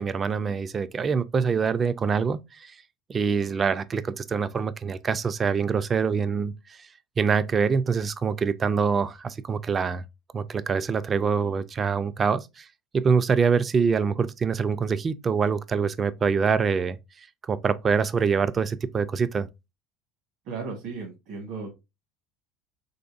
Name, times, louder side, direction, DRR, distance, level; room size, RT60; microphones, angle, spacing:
voice 1, 0.0-2.7 3.1-6.8 7.2-10.0 10.3-12.7 12.9-17.0 17.5-19.5, right 5 dB, 25° right, 0.3 m, -25 dB
voice 2, 20.4-21.8, right 4 dB, 65° right, 1.3 m, -35 dB
3.8 x 3.2 x 2.4 m
cardioid pair, 140°, 0 cm